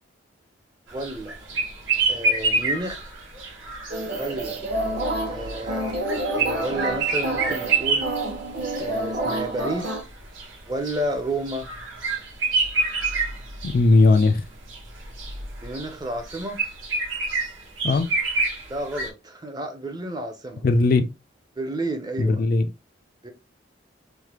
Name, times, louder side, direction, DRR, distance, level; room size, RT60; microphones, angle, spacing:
voice 1, 0.9-1.4 2.1-3.0 4.2-4.6 5.3-6.0 6.3-8.1 8.8-9.9 10.7-11.7 15.6-16.6 18.7-20.6 21.6-22.4 23.2-23.3, right 1 dB, 20° right, 0.5 m, -31 dB
sound 1, 0.9-19.1, right 3 dB, 75° right, 1.1 m, -28 dB
sound 2, 3.9-10.0, right 1 dB, 55° right, 0.9 m, -28 dB
voice 2, 13.6-14.4 17.8-18.1 20.6-21.1 22.2-22.7, left 3 dB, 45° left, 0.3 m, -18 dB
3.2 x 2.1 x 2.9 m
head